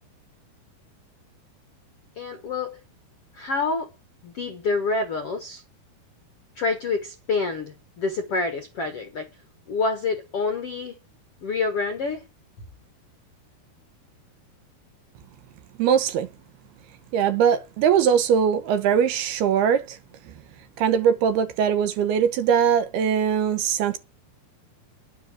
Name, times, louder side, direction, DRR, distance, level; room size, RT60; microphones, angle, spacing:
voice 1, 2.1-2.8 3.3-3.9 4.2-5.6 6.5-9.3 9.7-11.0 11.4-12.2, left 3 dB, 65° left, 1.5 m, -27 dB
voice 2, 15.8-16.3 17.1-20.0 20.8-24.0, right 8 dB, 75° right, 3.1 m, -21 dB
10.5 x 6.8 x 8.2 m
omnidirectional pair, 4.8 m